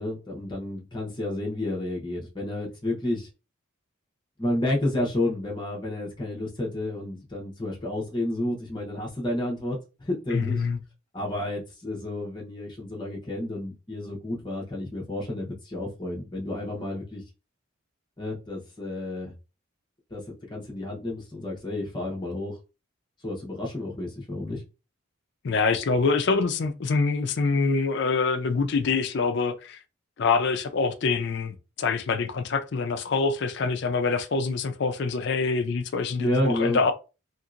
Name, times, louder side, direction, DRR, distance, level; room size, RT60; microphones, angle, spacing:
voice 1, 0.0-3.3 4.4-10.6 11.1-17.2 18.2-19.3 20.1-20.2 20.5-22.6 23.2-24.6 36.2-36.8, left 1 dB, 20° left, 0.9 m, -30 dB
voice 2, 10.3-10.8 25.4-29.8 30.2-36.9, left 4 dB, 55° left, 0.4 m, -25 dB
2.9 x 2.8 x 2.4 m
head